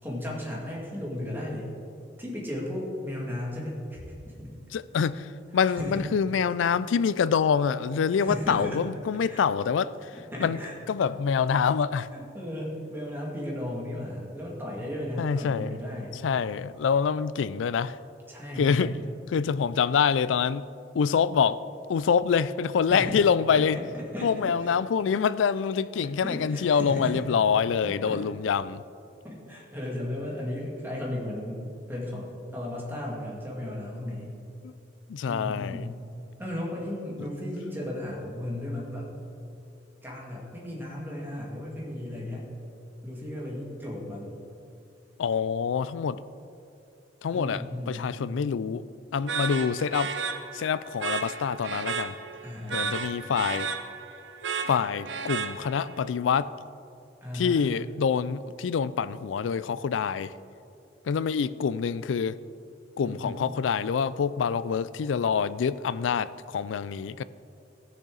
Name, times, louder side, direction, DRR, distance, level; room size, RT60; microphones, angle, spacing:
voice 1, 0.0-1.7 2.2-4.5 5.7-6.0 8.2-8.8 9.3-9.4 10.3-10.7 12.1-16.2 18.3-18.9 22.9-23.2 23.5-24.3 24.6-24.7 26.2-27.2 27.8-28.2 29.2-34.3 35.2-35.9 36.4-39.1 40.0-42.5 43.0-44.3 47.3-48.1 52.4-53.0 57.2-57.7 63.0-63.4, left 1 dB, 10° right, 2.3 m, -35 dB
voice 2, 4.7-10.1 10.4-10.6 10.9-12.1 15.2-15.8 16.1-18.0 18.6-18.9 19.3-20.7 20.9-21.6 21.9-23.8 24.2-28.8 34.6-34.7 35.1-35.9 45.2-46.2 47.2-48.8 49.1-50.1 50.5-52.1 52.7-53.7 54.7-56.5 57.3-60.3 61.1-62.4 63.0-67.2, left 6 dB, 85° left, 0.4 m, -26 dB
sound 1, 49.3-56.0, right 5 dB, 70° right, 0.7 m, -33 dB
16.5 x 6.7 x 3.9 m
head